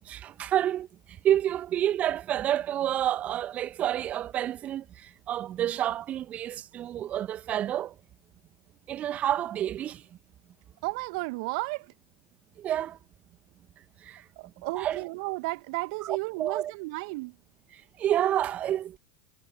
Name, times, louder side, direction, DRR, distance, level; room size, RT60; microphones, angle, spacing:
voice 1, 0.0-0.9 1.2-7.9 8.9-10.0 12.6-13.0 14.0-14.2 14.7-15.0 16.0-16.7 17.7-19.0, right 11 dB, 35° right, 1.3 m, -29 dB
voice 2, 10.8-11.9 14.4-17.4, right 27 dB, 55° right, 1.3 m, -33 dB
figure-of-eight pair, 85°, 4 cm